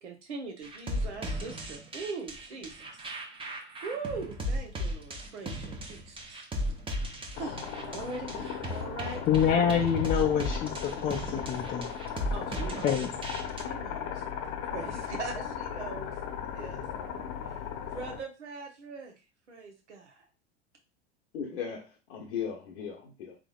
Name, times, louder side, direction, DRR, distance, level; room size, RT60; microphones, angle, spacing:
voice 1, 0.0-2.9 3.8-6.4 7.3-9.4 12.3-13.0 13.6-14.2 14.6-16.1 16.5-16.8 17.5-17.6 17.9-19.1 19.5-20.3, right 4 dB, 85° right, 2 dB, 1.1 m, -41 dB
sound 1, 0.6-13.6, equal, 15° right, 0.7 m, -36 dB
sound 2, 7.3-18.2, left 8 dB, 50° left, 0.8 m, -37 dB
voice 2, 9.3-11.9 12.8-13.1, left 8 dB, 25° left, 1 dB, 0.5 m, -26 dB
voice 3, 21.3-23.4, left 7 dB, 75° left, 0 dB, 0.8 m, -37 dB
3.6 x 3.3 x 2.3 m, 0.31 s
hypercardioid pair, 90°, 34 cm